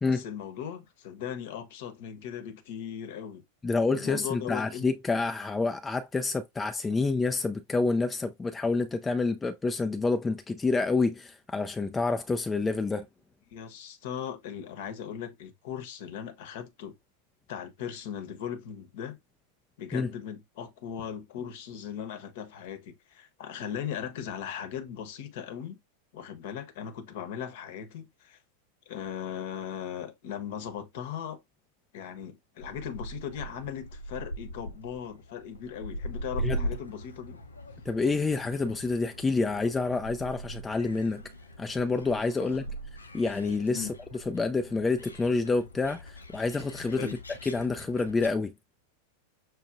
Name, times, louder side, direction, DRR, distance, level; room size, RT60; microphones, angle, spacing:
voice 1, 0.1-3.4 3.9-4.9 13.5-17.0 17.5-19.2 19.8-25.8 26.1-28.4 28.9-31.4 31.9-37.4 42.4-42.6 43.7-43.9 47.0-47.2, left 8 dB, 50° left, 0.8 m, -38 dB
voice 2, 3.6-13.1 19.9-20.1 36.4-36.7 37.9-41.2 41.6-42.6 43.1-43.9 44.3-47.1 47.4-48.5, left 3 dB, 15° left, 0.3 m, -28 dB
Gull seagull, 32.6-48.3, right 1 dB, 80° left, 0.6 m, -40 dB
6.0 x 2.3 x 2.5 m
figure-of-eight pair, 90°, 0 cm